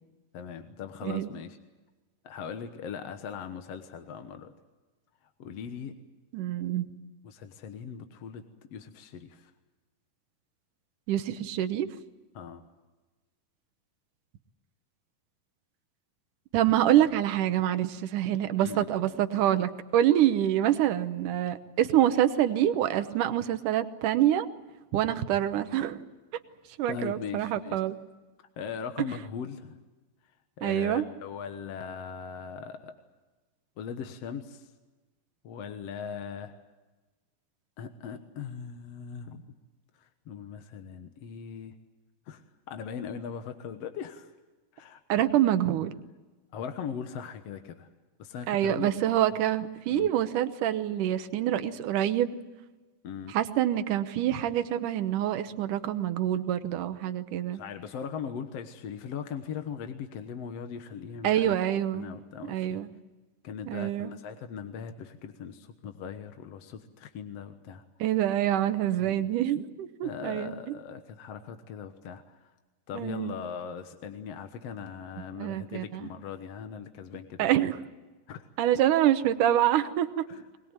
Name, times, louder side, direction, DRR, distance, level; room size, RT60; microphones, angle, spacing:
voice 1, 0.3-1.6 2.2-4.5 5.4-5.9 7.2-8.4 8.7-9.5 12.3-12.6 18.6-19.2 26.9-27.8 28.6-29.8 30.6-33.0 33.8-34.7 35.4-36.6 37.8-39.5 40.0-41.7 42.3-42.4 42.7-44.3 44.7-45.0 46.5-47.9 48.2-48.9 49.9-50.1 53.0-53.4 57.5-61.6 61.9-62.8 63.4-67.8 69.0-69.3 70.0-72.5 72.9-77.7 78.3-78.5 80.3-80.5, left 7 dB, 60° left, 7 dB, 1.9 m, -39 dB
voice 2, 6.3-6.9 11.1-11.9 16.5-24.5 24.9-26.0 26.8-28.0 30.6-31.0 45.1-45.9 48.5-52.4 53.3-57.6 61.2-62.1 62.5-62.9 63.7-64.1 68.0-70.5 72.9-73.4 75.4-76.1 77.4-77.8 78.6-80.3, right 12 dB, 70° right, 10 dB, 2.4 m, -26 dB
22.5 x 21.0 x 8.9 m, 1.2 s
omnidirectional pair, 4.0 m